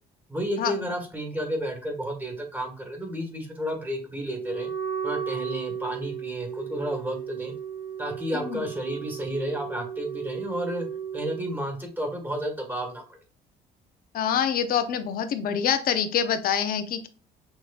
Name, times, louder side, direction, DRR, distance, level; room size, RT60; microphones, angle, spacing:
voice 1, 0.3-4.7 5.0-7.5 8.0-10.9 11.1-13.2, equal, 10° right, 2 dB, 1.7 m, -32 dB
Wind instrument woodwind instrument, 4.4-11.4, right 7 dB, 65° right, 1.8 m, -35 dB
voice 2, 14.1-17.1, left 8 dB, 60° left, 10 dB, 0.7 m, -26 dB
6.3 x 3.0 x 2.4 m, 0.37 s
cardioid pair, 110°, 17 cm